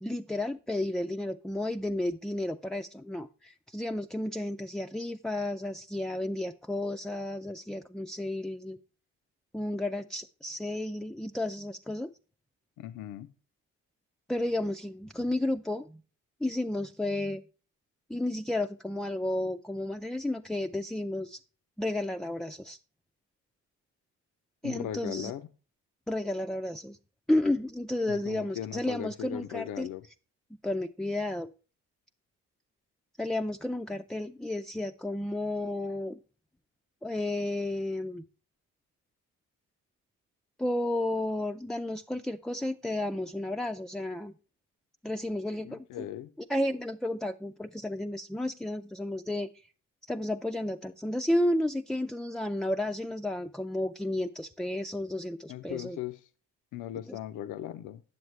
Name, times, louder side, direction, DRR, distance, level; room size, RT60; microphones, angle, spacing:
voice 1, 0.0-8.8 9.5-12.1 14.3-16.0 16.4-17.4 18.1-21.4 21.8-22.8 24.6-25.3 26.1-27.0 27.3-29.9 30.6-31.5 33.2-36.2 37.0-38.2 40.6-44.3 45.0-46.1 46.5-49.7 50.1-56.0 57.1-57.2, left 1 dB, ahead, 6 dB, 0.3 m, -32 dB
voice 2, 12.8-13.3 24.6-25.5 28.1-30.0 45.6-46.3 55.5-56.3 56.7-58.0, left 11 dB, 80° left, 10 dB, 0.6 m, -38 dB
9.5 x 7.2 x 3.2 m, 0.36 s
cardioid pair, 90°, 30 cm